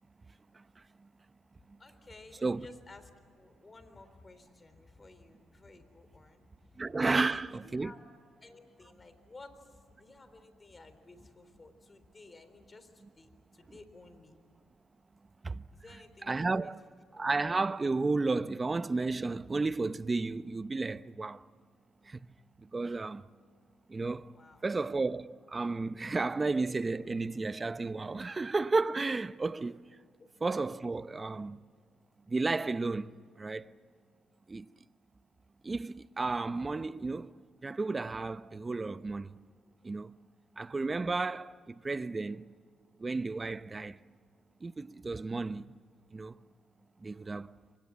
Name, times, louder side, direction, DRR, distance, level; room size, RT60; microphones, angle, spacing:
voice 1, 1.8-6.4 6.7-6.8 7.1-8.1 8.4-14.4 15.7-16.7 17.1-17.3 24.3-24.7 26.1-26.2 30.2-30.3 31.2-31.3, left 3 dB, 25° left, 3.7 m, -55 dB
voice 2, 6.8-7.9 15.4-15.6 16.2-16.8 17.1-21.4 22.1-22.3 22.6-23.2 23.9-24.4 24.6-30.0 30.4-31.6 32.3-33.1 33.4-33.7 34.5-34.7 35.6-37.3 37.6-39.3 39.8-40.1 40.6-42.5 43.0-44.0 44.6-45.7 46.1-46.4 47.0-47.5, right 3 dB, 25° right, 0.7 m, -33 dB
28.5 x 25.0 x 7.4 m
cardioid pair, 90°, 0 cm